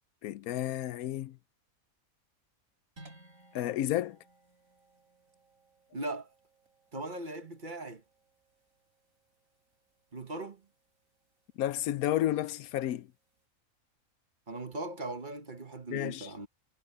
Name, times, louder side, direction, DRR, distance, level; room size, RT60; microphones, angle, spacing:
voice 1, 0.2-1.4 3.5-4.2 11.6-13.1 15.9-16.3, left 13 dB, 85° left, 1.1 m, -31 dB
sound 1, 3.0-13.5, right 1 dB, 65° right, 8.3 m, -62 dB
voice 2, 5.9-6.3 6.9-8.0 10.1-10.6 14.5-16.5, right 2 dB, 35° right, 1.3 m, -39 dB
omnidirectional pair, 1.5 m